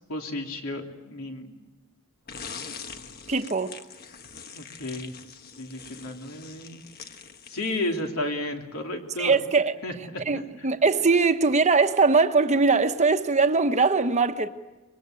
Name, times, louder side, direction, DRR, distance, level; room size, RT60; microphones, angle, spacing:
voice 1, 0.1-1.5 4.5-5.1 5.6-6.8 7.5-9.4 9.8-10.7, left 1 dB, 70° left, 3.1 m, -33 dB
sound 1, 2.3-8.2, left 6 dB, 45° left, 1.3 m, -43 dB
voice 2, 3.3-3.7 9.2-9.7 10.2-14.5, right 4 dB, 30° right, 1.0 m, -21 dB
24.0 x 22.5 x 9.0 m
head